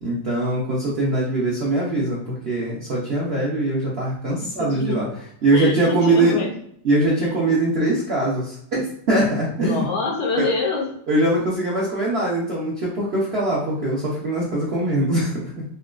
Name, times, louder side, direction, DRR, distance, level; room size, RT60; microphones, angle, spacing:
voice 1, 0.0-5.1 5.4-6.4 6.8-9.9 10.4-10.5 11.1-15.6, right 2 dB, 65° right, -5 dB, 0.6 m, -22 dB
voice 2, 4.6-5.2 5.5-6.6 7.2-7.3 9.6-11.0, left 3 dB, 70° left, 0 dB, 1.1 m, -26 dB
4.0 x 2.2 x 2.4 m, 0.68 s
omnidirectional pair, 2.0 m